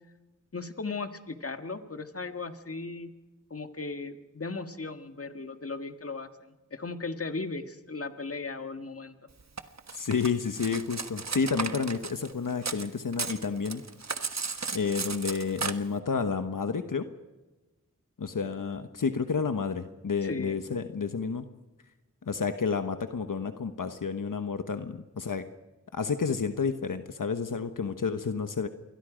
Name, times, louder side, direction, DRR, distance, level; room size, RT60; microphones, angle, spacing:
voice 1, 0.5-3.1 3.5-9.2 20.2-20.6, left 3 dB, 45° left, 8 dB, 1.8 m, -37 dB
Cutlery silverware, 9.6-12.9 13.1-15.7, right 4 dB, 55° right, 1.3 m, -34 dB
voice 2, 9.9-13.8 14.7-17.0 18.2-21.4 22.3-25.4 25.9-28.7, left 5 dB, 80° left, 8 dB, 1.2 m, -30 dB
28.0 x 22.5 x 5.1 m, 1.1 s
wide cardioid pair, 55°, 32 cm